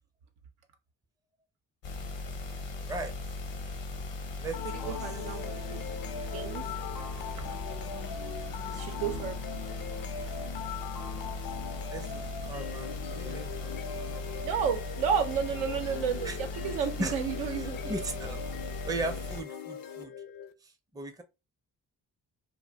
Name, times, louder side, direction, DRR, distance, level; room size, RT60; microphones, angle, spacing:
sound 1, 1.8-19.4, left 2 dB, 70° left, 0.8 m, -38 dB
sound 2, 4.5-20.5, left 6 dB, 50° left, 0.4 m, -41 dB
voice 1, 4.6-5.8 6.3-7.1 7.5-7.6 8.7-9.4 14.4-18.0, right 7 dB, 85° right, 0.6 m, -32 dB
voice 2, 8.6-9.2 11.9-13.8 16.3-16.4 17.0-17.1 17.9-18.4 18.8-20.1 20.9-21.2, right 2 dB, 10° right, 0.4 m, -37 dB
2.3 x 2.0 x 3.2 m
hypercardioid pair, 40°, 47 cm